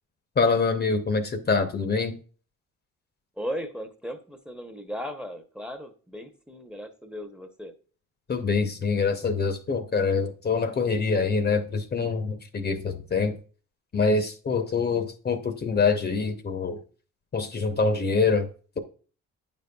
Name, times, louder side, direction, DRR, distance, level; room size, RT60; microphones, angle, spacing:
voice 1, 0.4-2.2 8.3-13.3 13.9-16.8 17.3-18.5, left 4 dB, 35° left, 0.7 m, -25 dB
voice 2, 3.4-7.7, equal, 5° right, 0.7 m, -36 dB
9.0 x 5.2 x 2.3 m
cardioid pair, 90°, 30 cm